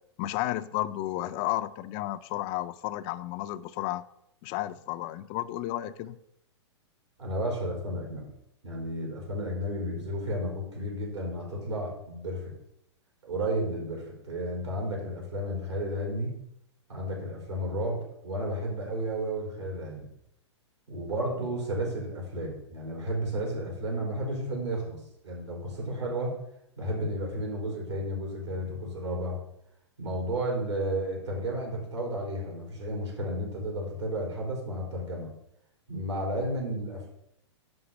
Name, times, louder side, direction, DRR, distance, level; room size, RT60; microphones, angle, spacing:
voice 1, 0.2-4.0 4.4-6.2, left 15 dB, 35° left, 12 dB, 0.4 m, -32 dB
voice 2, 7.2-8.3 8.6-12.5 13.2-16.3 16.9-20.1 20.9-26.4 26.8-29.4 30.0-35.3 35.9-37.1, right 1 dB, 70° right, -1 dB, 4.2 m, -32 dB
10.5 x 3.9 x 6.9 m, 0.78 s
figure-of-eight pair, 110°, 15 cm